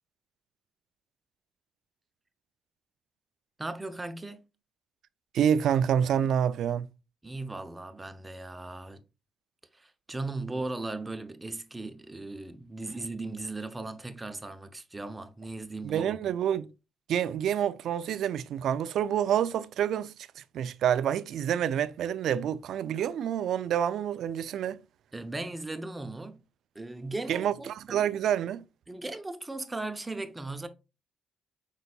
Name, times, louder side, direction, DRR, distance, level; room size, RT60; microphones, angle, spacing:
voice 1, 3.6-4.4 7.2-9.0 9.7-16.3 25.1-26.4 26.7-28.1 28.9-30.7, right 2 dB, 15° right, 0.7 m, -37 dB
voice 2, 5.3-6.9 15.8-16.7 17.1-24.8 27.3-28.6, right 9 dB, 75° right, 0.3 m, -28 dB
5.4 x 4.0 x 2.3 m
cardioid pair, 90°, 0 cm